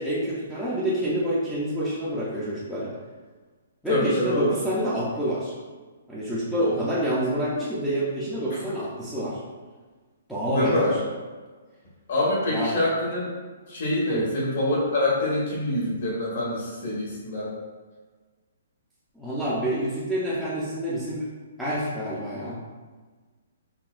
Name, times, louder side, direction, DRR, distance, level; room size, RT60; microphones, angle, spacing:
voice 1, 0.0-2.9 3.8-5.5 6.1-9.4 10.3-11.0 12.5-12.7 14.1-14.2 19.2-21.3 21.6-22.6, equal, ahead, -11 dB, 0.4 m, -27 dB
voice 2, 3.9-4.5 10.4-11.0 12.1-13.2 13.7-17.5, left 1 dB, 55° left, -5 dB, 1.4 m, -25 dB
5.5 x 2.2 x 2.4 m, 1.4 s
hypercardioid pair, 175°, 0 cm